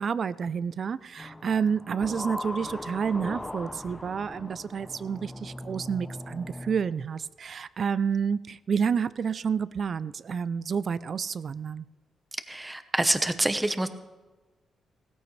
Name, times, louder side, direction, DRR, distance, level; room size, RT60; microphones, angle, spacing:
voice 1, 0.0-11.9, right 6 dB, 50° right, 17 dB, 0.4 m, -29 dB
sound 1, 1.2-7.0, left 1 dB, 10° left, 0.6 m, -39 dB
voice 2, 12.5-13.9, right 1 dB, 10° right, 10 dB, 1.0 m, -26 dB
16.5 x 14.0 x 3.2 m, 1.2 s
cardioid pair, 90°, 0 cm